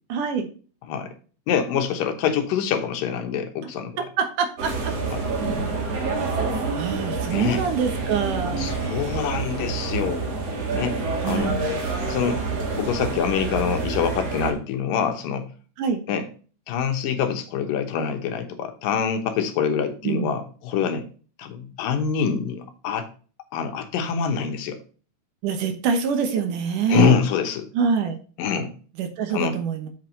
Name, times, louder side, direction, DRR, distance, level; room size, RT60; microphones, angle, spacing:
voice 1, 0.1-0.5 4.0-5.0 6.8-8.7 11.2-11.7 15.8-16.0 20.0-20.3 25.4-27.1 27.7-28.2 29.0-29.9, right 6 dB, 75° right, 7 dB, 2.6 m, -25 dB
voice 2, 1.5-4.0 5.1-5.2 7.3-7.6 8.6-10.3 10.7-11.5 12.1-12.4 12.7-15.5 16.1-16.3 16.7-21.1 21.4-23.1 23.5-24.8 26.9-27.7 28.4-28.7 29.3-29.6, left 7 dB, 80° left, 6 dB, 2.7 m, -25 dB
sound 1, 4.6-14.5, right 3 dB, 50° right, 2.6 m, -27 dB
8.0 x 4.7 x 5.3 m, 0.38 s
omnidirectional pair, 3.9 m